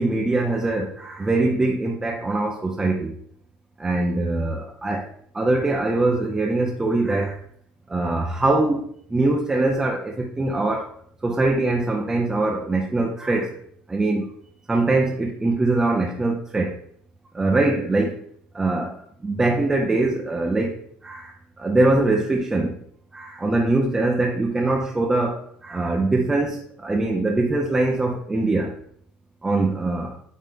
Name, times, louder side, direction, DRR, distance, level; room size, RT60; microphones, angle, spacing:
voice 1, 0.0-3.1 3.8-5.1 5.3-7.3 7.9-10.9 11.2-13.6 13.9-14.3 14.7-16.7 17.3-18.1 18.5-18.9 19.2-20.8 21.0-21.3 21.6-22.7 23.1-28.7 29.4-30.1, right 2 dB, 15° right, 0 dB, 0.7 m, -22 dB
9.1 x 3.1 x 3.7 m, 0.63 s
cardioid pair, 120°, 4 cm